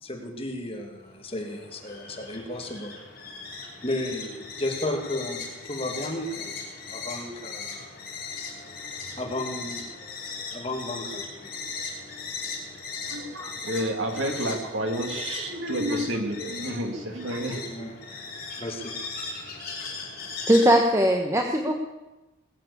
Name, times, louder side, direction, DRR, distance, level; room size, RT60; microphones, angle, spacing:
voice 1, 0.0-3.0 3.8-7.9 9.2-9.9 10.5-11.6 17.7-19.4, left 1 dB, 25° left, 2 dB, 2.1 m, -34 dB
sound 1, 1.0-20.7, left 4 dB, 45° left, 4.9 m, -38 dB
voice 2, 13.1-17.7, right 1 dB, 70° right, 4 dB, 2.3 m, -30 dB
voice 3, 20.5-21.8, equal, 15° right, 3 dB, 1.0 m, -20 dB
20.5 x 7.7 x 8.4 m, 1.1 s
head